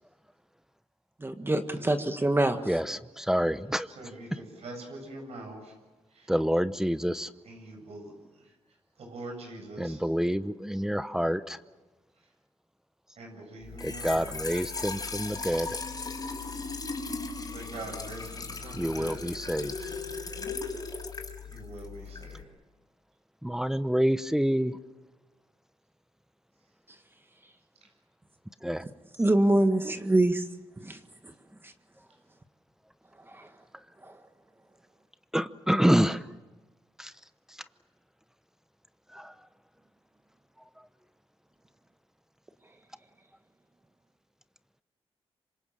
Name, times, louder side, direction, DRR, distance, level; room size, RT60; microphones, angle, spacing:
voice 1, 1.2-2.6 29.2-30.4 30.8-31.0 31.6-31.7 33.3-33.5 34.0-34.1, right 1 dB, 20° right, 7 dB, 1.8 m, -25 dB
voice 2, 2.6-3.9 4.3-4.4 6.3-7.3 9.8-11.6 13.8-15.8 18.7-19.9 23.4-24.8 28.6-28.9 35.3-36.3 37.0-37.1 37.5-37.6 39.1-39.3, equal, 5° right, 13 dB, 0.8 m, -28 dB
voice 3, 4.0-5.7 6.1-6.3 7.4-8.1 8.4-8.5 9.0-10.0 13.2-14.3 17.4-19.2 21.5-22.4, right 2 dB, 75° right, 2 dB, 7.9 m, -43 dB
Trickle dribble / Fill (with liquid), 13.6-22.4, left 4 dB, 40° left, 5.3 m, -37 dB
27.0 x 25.5 x 7.5 m, 1.2 s
cardioid pair, 85°, 11 cm